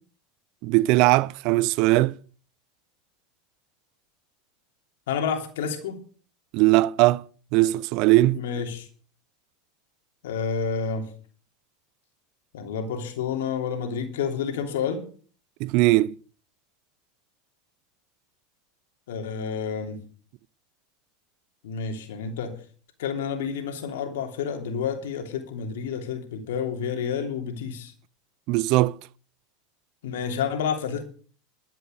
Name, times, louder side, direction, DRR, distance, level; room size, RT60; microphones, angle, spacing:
voice 1, 0.6-2.1 6.5-7.2 7.5-8.4 15.6-16.2 28.5-29.0, right 18 dB, 60° right, 0.5 m, -20 dB
voice 2, 5.1-6.0 8.3-8.9 10.2-11.1 12.5-15.0 19.1-20.0 21.6-22.6 23.0-27.9 30.0-31.0, left 6 dB, 80° left, 2.9 m, -29 dB
12.5 x 9.1 x 6.5 m
hypercardioid pair, 100°, 0 cm